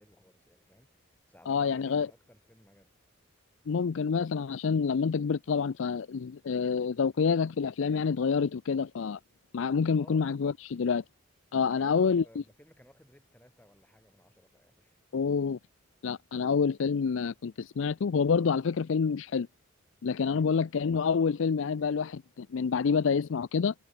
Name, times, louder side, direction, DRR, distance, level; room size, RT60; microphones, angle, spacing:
voice 1, 0.0-2.9 10.0-10.3 11.8-15.0 20.3-20.5, equal, 10° left, 5.4 m, -59 dB
voice 2, 1.5-2.1 3.7-9.2 9.5-11.0 11.5-12.2 15.1-15.6 16.0-19.5 20.0-23.7, left 5 dB, 65° left, 0.4 m, -27 dB
head